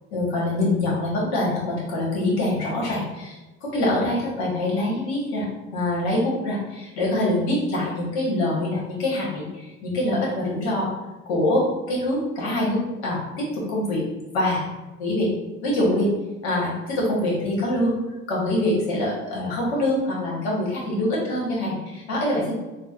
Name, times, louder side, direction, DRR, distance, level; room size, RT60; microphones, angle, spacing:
voice 1, 0.1-10.9 11.3-14.0 14.3-14.7 15.0-15.3 15.6-16.1 16.4-17.9 18.3-22.5, left 1 dB, 90° left, -4 dB, 1.2 m, -24 dB
3.9 x 2.0 x 2.4 m, 1.1 s
supercardioid pair, 85°, 32 cm